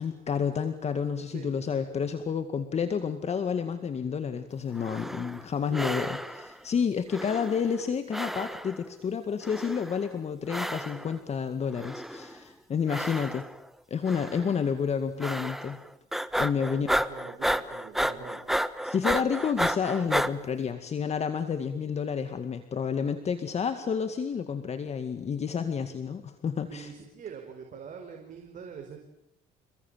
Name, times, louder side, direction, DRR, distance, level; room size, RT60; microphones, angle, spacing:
voice 1, 0.0-13.5 13.9-15.8 16.4-16.9 18.8-26.9, left 6 dB, 40° left, 9 dB, 2.1 m, -30 dB
sound 1, 4.7-5.5 5.7-6.5 7.1-8.9 9.4-10.1 10.5-11.1 11.7-12.4 12.9-13.7 14.1-14.5 15.2-15.8 16.1-20.3, equal, ahead, 1.2 m, -32 dB
voice 2, 5.7-6.1 16.7-18.4 26.7-29.0, right 7 dB, 50° right, 3 dB, 5.1 m, -43 dB
28.5 x 21.5 x 9.2 m, 0.77 s
cardioid pair, 110°, 17 cm